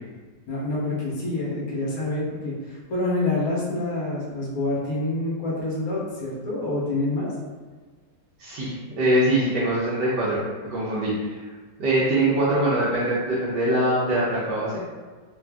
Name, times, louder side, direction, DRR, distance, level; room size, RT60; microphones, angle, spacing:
voice 1, 0.5-7.3, left 2 dB, 55° left, -5 dB, 1.3 m, -27 dB
voice 2, 8.4-11.4 11.8-14.8, right 1 dB, 65° right, -7 dB, 1.4 m, -23 dB
3.9 x 2.4 x 3.4 m, 1.4 s
omnidirectional pair, 2.0 m